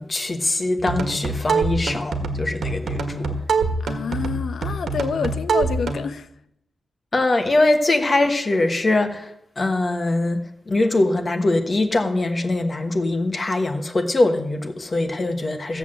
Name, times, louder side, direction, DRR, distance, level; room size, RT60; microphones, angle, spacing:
voice 1, 0.0-3.3 7.1-15.8, left 2 dB, 30° left, 1.3 m, -22 dB
sound 1, 0.8-6.1, right 3 dB, 80° right, 1.7 m, -25 dB
voice 2, 3.8-6.3, left 6 dB, 65° left, 0.8 m, -28 dB
15.5 x 7.9 x 7.6 m
wide cardioid pair, 160°, 0 cm